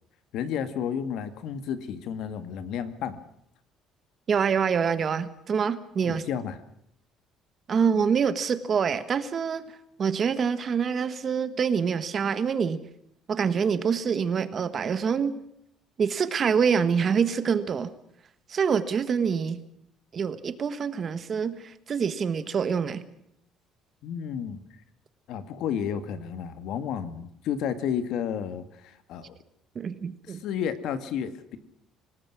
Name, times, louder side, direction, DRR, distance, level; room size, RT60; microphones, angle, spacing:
voice 1, 0.3-3.2 6.0-6.6 24.0-24.6 25.3-29.4 30.3-31.6, left 8 dB, 65° left, 11 dB, 2.1 m, -32 dB
voice 2, 4.3-6.2 7.7-9.6 10.0-12.8 13.3-15.4 16.0-17.9 18.5-19.6 20.1-23.0 29.7-30.4, right 6 dB, 30° right, 13 dB, 1.4 m, -26 dB
26.5 x 18.5 x 6.1 m, 0.75 s
cardioid pair, 160°, 0 cm